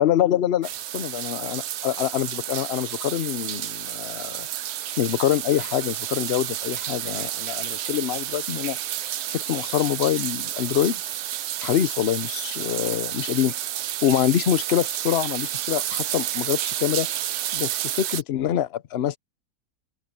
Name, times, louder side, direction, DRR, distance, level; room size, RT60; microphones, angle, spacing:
voice 1, 0.0-4.5 5.0-8.8 9.3-11.0 11.6-13.5 14.0-17.1 17.5-19.2, left 11 dB, 55° left, 0.8 m, -25 dB
sound 1, 0.6-18.2, right 12 dB, 75° right, 0.6 m, -30 dB
open air
omnidirectional pair, 1.7 m